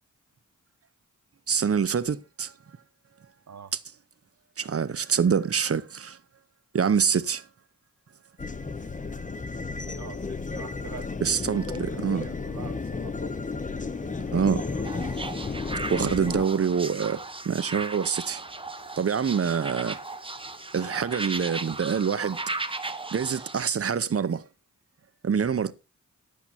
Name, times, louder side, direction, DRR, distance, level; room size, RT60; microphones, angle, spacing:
voice 1, 1.5-2.5 4.6-6.2 6.7-7.5 11.2-12.3 14.3-14.7 15.9-18.4 19.0-20.0 20.7-22.4 23.1-24.4 25.2-25.7, right 6 dB, 45° right, 0.8 m, -26 dB
sound 1, 8.4-16.4, left 4 dB, 25° left, 0.7 m, -33 dB
voice 2, 9.7-11.1 11.5-13.7 14.7-14.9, right 7 dB, 60° right, 1.3 m, -46 dB
sound 2, 13.9-22.5, left 3 dB, 60° left, 4.0 m, -56 dB
sound 3, 14.8-23.6, right 3 dB, 15° right, 0.9 m, -36 dB
11.5 x 8.4 x 4.2 m
wide cardioid pair, 130°, 32 cm